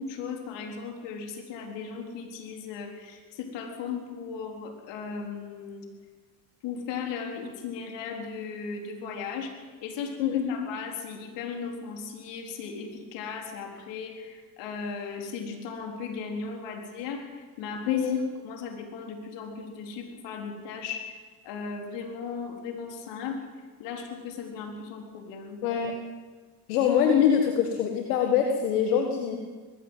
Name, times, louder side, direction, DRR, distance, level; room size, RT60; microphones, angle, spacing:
voice 1, 0.0-5.9 6.6-9.5 9.8-21.2 21.4-23.5 23.8-25.6, left 5 dB, 75° left, 3 dB, 4.2 m, -36 dB
voice 2, 10.2-10.6 17.9-18.2 25.6-26.0 26.7-29.4, left 8 dB, 90° left, 4 dB, 1.8 m, -24 dB
20.0 x 15.0 x 9.1 m, 1.4 s
supercardioid pair, 70°, 44 cm